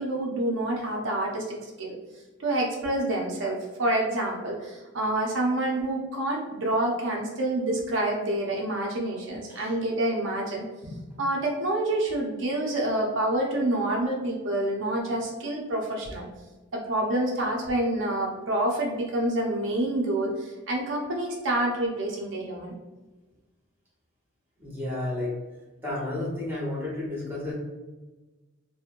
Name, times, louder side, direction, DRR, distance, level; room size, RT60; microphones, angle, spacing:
voice 1, 0.0-2.0 2.4-10.6 11.2-16.3 16.7-22.7, right 1 dB, 75° right, -1 dB, 0.5 m, -27 dB
voice 2, 24.6-25.3 25.8-27.5, left 2 dB, 10° right, -6 dB, 0.9 m, -32 dB
2.9 x 2.1 x 2.4 m, 1.2 s
head